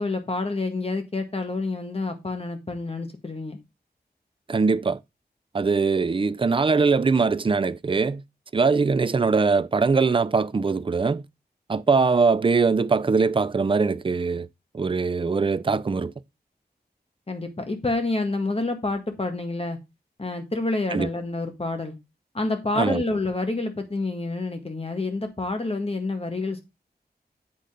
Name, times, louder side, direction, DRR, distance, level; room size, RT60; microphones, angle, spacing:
voice 1, 0.0-3.6 17.3-19.8 20.2-22.0 22.3-26.6, left 2 dB, 35° left, 1.8 m, -28 dB
voice 2, 4.5-5.0 5.5-8.2 8.5-11.2 11.7-14.5 14.7-16.1 20.9-21.1 22.8-23.0, right 4 dB, 30° right, 0.4 m, -22 dB
8.4 x 3.9 x 5.0 m
wide cardioid pair, 75°, 17 cm